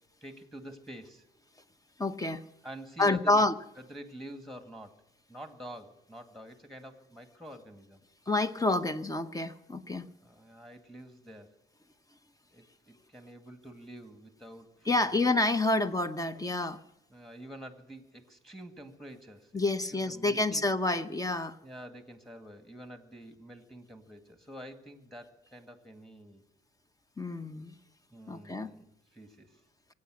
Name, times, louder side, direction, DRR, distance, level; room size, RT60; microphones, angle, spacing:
voice 1, 0.2-1.3 2.6-3.4 3.8-5.0 5.3-8.0 10.2-11.5 12.5-15.2 17.1-19.5 19.9-20.6 21.6-26.4 28.1-29.6, equal, ahead, 6 dB, 2.1 m, -47 dB
voice 2, 2.0-2.5 3.0-3.5 8.3-10.1 14.9-16.8 19.5-21.6 27.2-27.8 28.3-28.7, left 2 dB, 15° left, 10 dB, 0.9 m, -28 dB
24.0 x 8.6 x 6.4 m, 0.92 s
cardioid pair, 90°, 20 cm